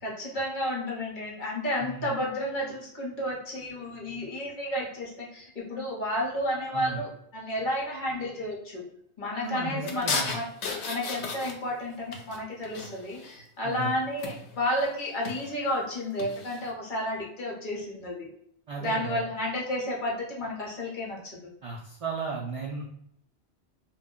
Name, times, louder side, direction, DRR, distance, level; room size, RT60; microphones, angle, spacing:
voice 1, 0.0-8.8 9.2-10.4 10.8-18.3 18.8-21.2, left 1 dB, 50° left, -3 dB, 0.9 m, -31 dB
voice 2, 6.7-7.0 9.4-10.4 13.6-13.9 18.7-19.2 21.6-22.8, right 4 dB, 65° right, -2 dB, 0.3 m, -35 dB
sound 1, 9.9-11.8 12.1-13.4 14.2-14.6 15.1-15.5 16.2-16.6, left 4 dB, 85° left, 0.9 m, -34 dB
2.3 x 2.1 x 3.5 m, 0.71 s
omnidirectional pair, 1.1 m